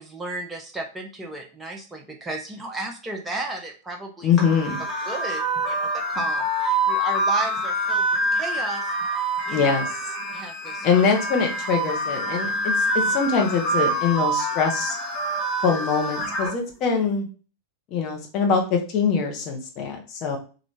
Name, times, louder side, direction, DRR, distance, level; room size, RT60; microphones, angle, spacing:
voice 1, 0.0-4.3 5.1-8.9 9.2-9.7 10.3-11.0 13.1-13.2, right 2 dB, 10° right, 1 dB, 0.6 m, -34 dB
voice 2, 4.2-4.8 9.5-9.9 10.8-15.0 15.6-17.3 17.9-20.4, left 5 dB, 40° left, 3 dB, 0.9 m, -23 dB
sound 1, 4.4-16.5, right 1 dB, 20° left, 1.2 m, -26 dB
3.1 x 2.5 x 3.3 m, 0.36 s
figure-of-eight pair, 90°, 0 cm